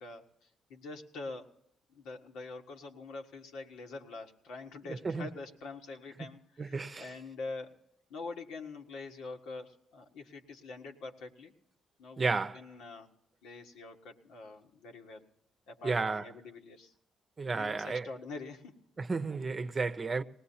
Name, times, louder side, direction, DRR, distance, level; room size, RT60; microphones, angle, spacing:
voice 1, 0.0-1.5 1.9-7.7 8.1-11.5 12.0-13.1 13.4-15.3 15.7-16.9 17.6-18.8, left 3 dB, 90° left, 1.6 m, -45 dB
voice 2, 4.9-5.3 6.6-7.1 12.2-12.6 15.8-16.3 17.4-18.1 19.0-20.2, right 4 dB, 35° right, 0.7 m, -32 dB
20.0 x 18.5 x 2.8 m
cardioid pair, 90°, 0 cm